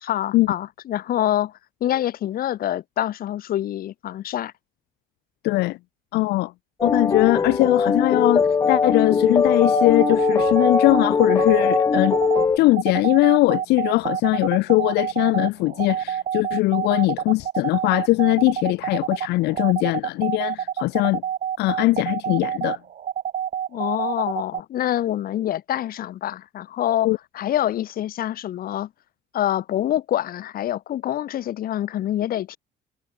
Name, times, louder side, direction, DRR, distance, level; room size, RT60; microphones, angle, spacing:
voice 1, 0.0-1.5 1.8-4.5 23.7-28.9 29.3-32.6, left 12 dB, 60° left, 1.5 m, -26 dB
voice 2, 5.4-5.8 6.1-6.5 6.8-12.1 12.6-21.2 21.6-22.8 27.0-27.2, left 20 dB, 80° left, 0.5 m, -20 dB
sound 1, 6.8-12.6, left 5 dB, 20° left, 0.4 m, -20 dB
sound 2, 9.6-24.6, right 9 dB, 50° right, 2.7 m, -27 dB
cardioid pair, 110°, 17 cm